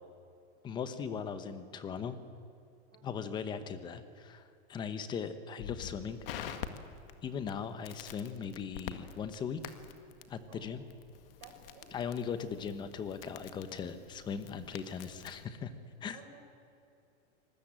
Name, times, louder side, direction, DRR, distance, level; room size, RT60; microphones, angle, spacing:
voice 1, 0.6-2.2 3.0-4.4 4.7-6.2 7.2-9.6 10.3-10.8 11.9-15.7 16.0-16.2, left 6 dB, 15° left, 11 dB, 1.0 m, -39 dB
voice 2, 2.9-3.2 4.8-5.0 10.5-10.6 11.4-12.0 16.1-16.4, right 5 dB, 40° right, 2 dB, 5.4 m, -56 dB
Crackle, 5.6-15.5, left 9 dB, 55° left, 1.9 m, -47 dB
26.0 x 20.0 x 8.8 m, 2.6 s
supercardioid pair, 170°, 33 cm